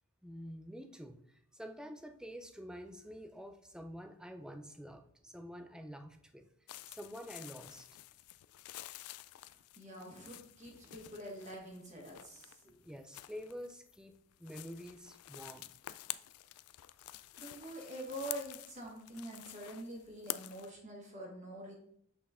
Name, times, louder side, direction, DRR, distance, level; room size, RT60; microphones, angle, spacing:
voice 1, 0.2-8.0 12.8-15.7, equal, 5° right, 7 dB, 0.4 m, -48 dB
sound 1, 6.7-20.7, left 15 dB, 75° left, 0.3 m, -49 dB
voice 2, 9.8-12.7 17.1-21.7, right 1 dB, 30° right, -1 dB, 1.4 m, -46 dB
8.0 x 4.3 x 3.7 m, 0.67 s
head